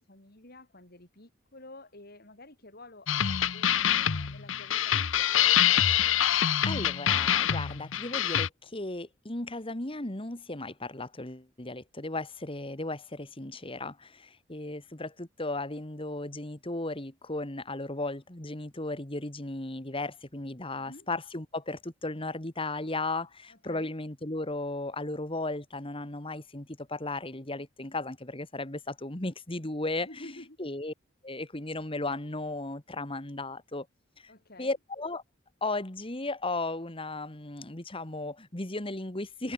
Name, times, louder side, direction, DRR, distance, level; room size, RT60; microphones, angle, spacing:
voice 1, 0.0-5.6 14.6-14.8 20.7-21.1 23.5-23.9 30.0-30.6 34.3-34.7, left 2 dB, 50° left, 4.9 m, -50 dB
sound 1, 3.1-8.5, left 10 dB, 70° left, 0.9 m, -25 dB
voice 2, 6.6-30.3 30.6-30.9 31.2-33.9 34.2-34.3 34.6-35.2 35.6-39.5, left 2 dB, 25° left, 2.0 m, -35 dB
head